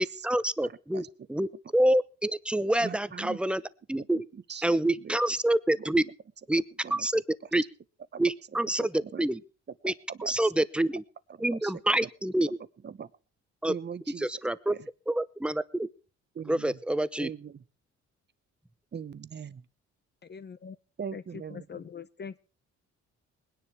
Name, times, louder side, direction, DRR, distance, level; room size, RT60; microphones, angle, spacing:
voice 1, 0.0-3.6 3.9-4.2 4.6-6.0 6.5-6.6 6.9-7.2 7.5-7.6 8.2-9.4 9.8-9.9 10.2-11.0 11.4-12.5 13.6-13.7 14.2-14.7 15.1-15.9 16.5-17.3, right 1 dB, 5° right, 16 dB, 0.8 m, -27 dB
voice 2, 2.8-3.4 4.5-4.6 5.0-5.2 5.8-5.9 6.8-7.2 8.1-8.2 8.8-9.2 9.8-10.5 11.3-12.1 12.8-13.1 13.7-14.4 14.7-14.9 16.3-16.8 17.2-17.6 18.9-19.6 21.0-21.6, right 7 dB, 35° right, 16 dB, 0.9 m, -41 dB
voice 3, 20.2-20.7 21.1-22.4, left 6 dB, 35° left, 14 dB, 0.7 m, -42 dB
20.5 x 10.0 x 4.6 m, 0.36 s
cardioid pair, 90°, 30 cm